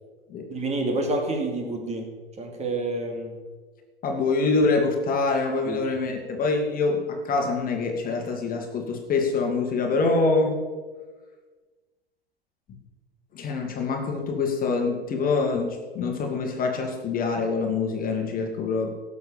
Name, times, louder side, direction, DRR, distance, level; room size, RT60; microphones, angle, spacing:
voice 1, 0.5-2.1 2.4-3.3 5.7-5.8, right 2 dB, 20° right, 3 dB, 2.7 m, -28 dB
voice 2, 4.0-10.5 13.3-18.9, left 3 dB, 30° left, 3 dB, 2.1 m, -25 dB
17.5 x 7.1 x 6.9 m, 1.4 s
figure-of-eight pair, 85°, 31 cm